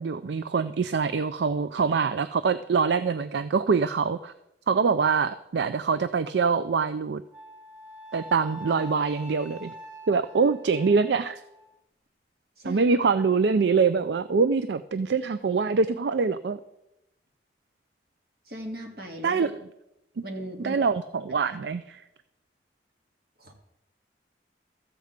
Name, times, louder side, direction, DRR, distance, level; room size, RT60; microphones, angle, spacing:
voice 1, 0.0-4.3 4.7-7.2 8.1-9.7 10.1-11.4 12.6-16.6 19.2-19.5 20.2-20.3 20.6-22.0, right 5 dB, 75° right, 13 dB, 0.4 m, -24 dB
Wind instrument woodwind instrument, 7.3-11.7, left 1 dB, 5° right, 2.3 m, -44 dB
voice 2, 18.5-19.5 20.2-20.8 21.4-21.6 23.4-23.5, equal, 55° right, 2 dB, 2.0 m, -37 dB
14.0 x 5.0 x 8.0 m, 0.88 s
head